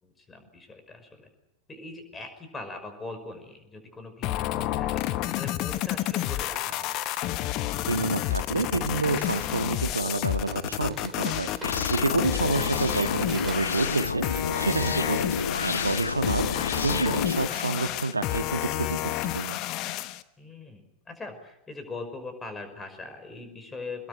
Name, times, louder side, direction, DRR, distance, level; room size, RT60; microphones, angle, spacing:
voice 1, 0.0-1.3 1.7-5.0 5.3-7.0 12.3-12.7 20.4-24.1, left 3 dB, 15° left, 8 dB, 5.5 m, -41 dB
sound 1, 4.2-20.2, left 14 dB, 40° left, 1.1 m, -30 dB
voice 2, 7.9-19.6, right 3 dB, 80° right, 9 dB, 1.5 m, -29 dB
sound 2, 10.4-15.2, right 4 dB, 10° right, 3.2 m, -45 dB
sound 3, 11.6-17.5, left 5 dB, 75° left, 0.9 m, -30 dB
24.0 x 21.0 x 8.1 m, 0.89 s
figure-of-eight pair, 90°, 0 cm